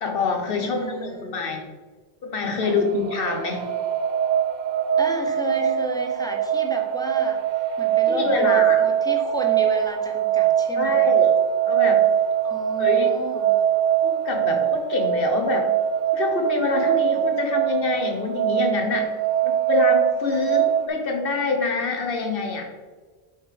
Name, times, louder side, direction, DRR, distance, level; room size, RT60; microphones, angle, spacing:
voice 1, 0.0-1.6 2.2-3.7 8.1-8.8 10.8-11.3 11.6-12.0 12.8-13.1 14.0-15.7 16.1-19.1 19.4-22.7, left 4 dB, 60° left, 3 dB, 1.2 m, -25 dB
voice 2, 0.6-1.4 2.6-2.8 5.0-7.4 7.8-11.1 12.4-13.6 20.3-20.5, right 1 dB, 5° left, 3 dB, 0.5 m, -33 dB
sound 1, 2.7-20.9, right 10 dB, 55° right, 0.5 m, -22 dB
5.7 x 5.4 x 3.3 m, 1.4 s
omnidirectional pair, 1.1 m